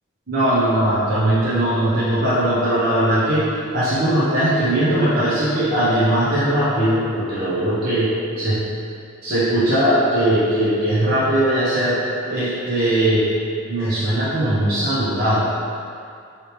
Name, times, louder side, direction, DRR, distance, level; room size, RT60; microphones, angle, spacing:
voice 1, 0.3-3.4 3.7-8.1 8.4-8.6 9.2-13.3 13.7-15.4, right 1 dB, 50° right, -12 dB, 1.3 m, -19 dB
8.5 x 3.3 x 3.3 m, 2.4 s
head